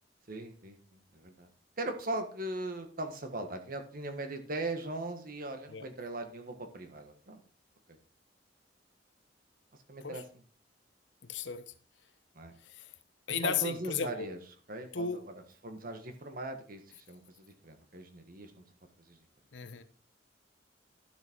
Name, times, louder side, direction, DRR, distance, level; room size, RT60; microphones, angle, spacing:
voice 1, 0.3-1.5 1.8-7.4 7.9-8.0 9.9-10.2 12.3-12.5 13.4-14.4 14.7-18.6 19.0-19.2, right 2 dB, 55° right, 1.5 m, -39 dB
voice 2, 11.2-11.7 12.6-12.9 13.3-14.3 14.9-15.2 19.5-19.8, left 6 dB, 90° left, 0.9 m, -35 dB
11.5 x 6.3 x 4.5 m
head